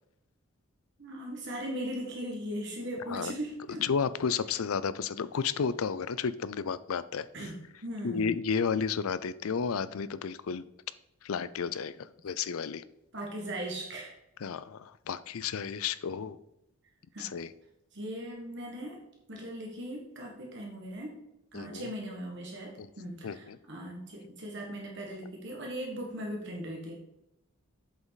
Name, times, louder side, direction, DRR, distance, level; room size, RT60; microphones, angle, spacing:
voice 1, 1.0-3.8 7.3-8.3 13.1-14.1 15.8-15.9 17.1-17.3 17.9-19.0 19.3-21.1 21.5-26.9, right 1 dB, 55° right, -1 dB, 1.6 m, -39 dB
voice 2, 3.8-7.3 8.0-10.6 11.2-12.8 14.4-16.4 17.2-17.5 21.5-21.9 22.8-22.9 23.2-23.6, left 6 dB, 75° left, 15 dB, 0.5 m, -32 dB
8.3 x 7.3 x 4.1 m, 0.85 s
head